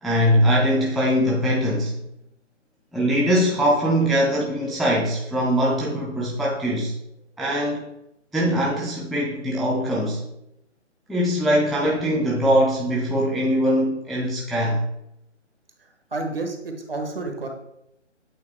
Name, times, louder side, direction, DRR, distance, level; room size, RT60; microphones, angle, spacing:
voice 1, 0.0-2.0 2.9-6.9 7.4-7.8 8.3-10.2 11.1-14.8, equal, ahead, -5 dB, 0.4 m, -22 dB
voice 2, 15.8-17.5, right 3 dB, 50° right, 3 dB, 1.1 m, -30 dB
8.3 x 4.0 x 3.2 m, 0.83 s
hypercardioid pair, 180°, 37 cm